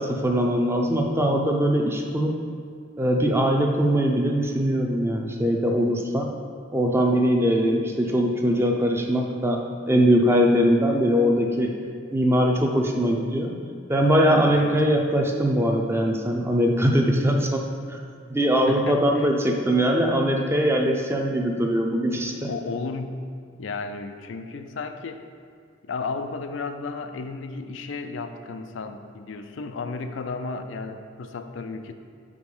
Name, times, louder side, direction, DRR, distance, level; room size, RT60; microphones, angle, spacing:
voice 1, 0.0-2.4 3.0-6.3 6.7-11.7 12.1-13.5 13.9-17.6 17.9-18.0 18.3-22.5, equal, 15° right, 1 dB, 0.5 m, -21 dB
voice 2, 18.7-19.3 22.4-23.3 23.6-25.2 25.8-31.9, left 4 dB, 90° left, 7 dB, 0.4 m, -33 dB
4.9 x 4.5 x 5.4 m, 2.2 s
head